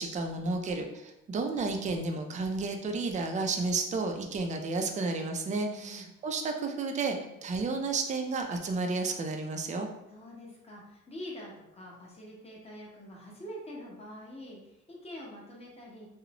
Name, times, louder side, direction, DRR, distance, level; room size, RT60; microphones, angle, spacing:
voice 1, 0.0-9.9, right 3 dB, 25° right, 5 dB, 0.3 m, -32 dB
voice 2, 5.6-6.1 7.3-7.4 10.1-16.1, equal, 20° left, -3 dB, 0.8 m, -45 dB
2.5 x 2.0 x 2.8 m, 0.86 s
cardioid pair, 90°, 30 cm